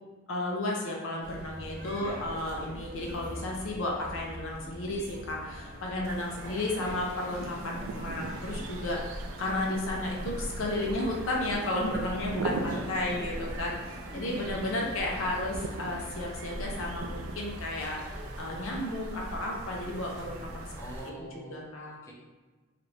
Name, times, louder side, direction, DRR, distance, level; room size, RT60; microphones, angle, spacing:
voice 1, 0.3-20.7 21.3-22.0, left 1 dB, 75° left, -1 dB, 0.6 m, -33 dB
sound 1, 1.2-21.0, equal, 40° right, 0.7 m, -42 dB
voice 2, 2.0-2.6 6.4-7.2 12.7-13.3 14.0-14.3 20.8-22.1, equal, 15° left, -2 dB, 0.5 m, -45 dB
sound 2, 6.0-21.1, right 4 dB, 80° right, 0.3 m, -42 dB
3.0 x 2.5 x 3.2 m, 1.3 s
head